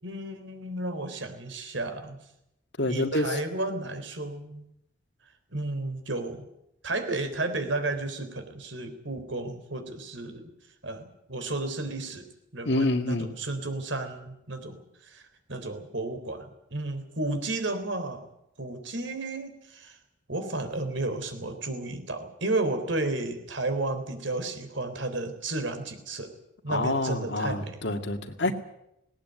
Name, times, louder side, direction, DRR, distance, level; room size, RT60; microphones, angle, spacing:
voice 1, 0.0-2.2 2.9-4.7 5.5-6.4 6.8-10.5 10.8-12.3 12.5-15.2 15.5-18.3 18.6-20.0 20.3-26.3 26.6-27.8 28.4-28.5, right 2 dB, 75° right, 8 dB, 3.8 m, -33 dB
voice 2, 2.8-3.4 12.7-13.3 26.7-28.5, left 2 dB, 65° left, 6 dB, 2.1 m, -27 dB
19.0 x 18.5 x 9.3 m, 0.83 s
head